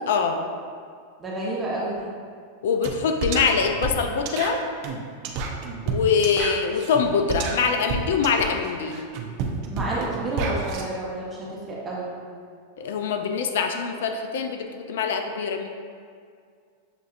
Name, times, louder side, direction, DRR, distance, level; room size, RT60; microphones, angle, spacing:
voice 1, 0.1-0.5 2.6-4.6 5.9-9.0 12.8-15.7, left 5 dB, 70° left, 5 dB, 0.4 m, -24 dB
voice 2, 1.2-2.1 9.7-12.1, right 2 dB, 20° right, -6 dB, 0.9 m, -30 dB
sound 1, 2.8-3.0 3.2-10.8, right 4 dB, 55° right, 0.5 m, -30 dB
6.7 x 2.6 x 2.4 m, 2.2 s
hypercardioid pair, 105°, 0 cm